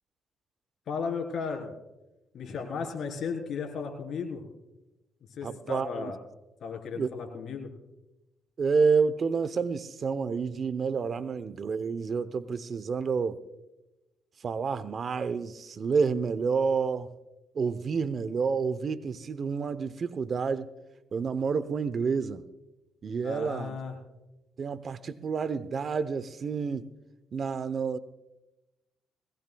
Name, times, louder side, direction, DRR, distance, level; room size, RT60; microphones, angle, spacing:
voice 1, 0.9-1.7 2.3-4.4 5.3-6.2 6.6-7.7 23.2-23.9, left 5 dB, 65° left, 3.7 m, -35 dB
voice 2, 5.4-6.1 7.0-7.1 8.6-13.4 14.4-17.1 17.5-20.7 21.1-22.4 23.0-23.8 24.6-26.9 27.3-28.0, right 5 dB, 50° right, 0.7 m, -29 dB
20.5 x 18.0 x 2.3 m
cardioid pair, 90°, 0 cm